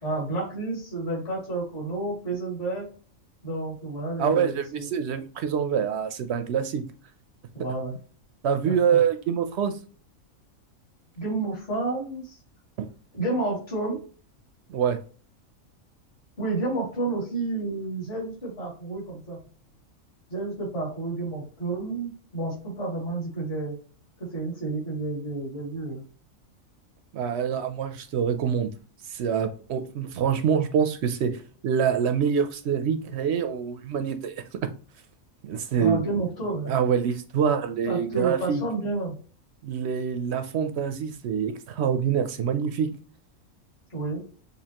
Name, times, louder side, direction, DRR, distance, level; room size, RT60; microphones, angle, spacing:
voice 1, 0.0-2.8 3.4-4.9 7.5-8.0 8.6-9.0 11.2-12.4 13.1-14.0 16.4-19.4 20.3-23.7 24.3-26.0 35.7-36.7 37.9-39.2 43.9-44.2, right 2 dB, 45° left, 2.8 m, -30 dB
voice 2, 4.2-6.8 8.4-9.7 12.8-12.9 14.7-15.0 27.1-28.7 29.1-34.7 35.4-36.1 36.7-38.6 39.6-42.9, right 7 dB, 65° right, 0.7 m, -25 dB
6.7 x 2.7 x 2.9 m
omnidirectional pair, 1.4 m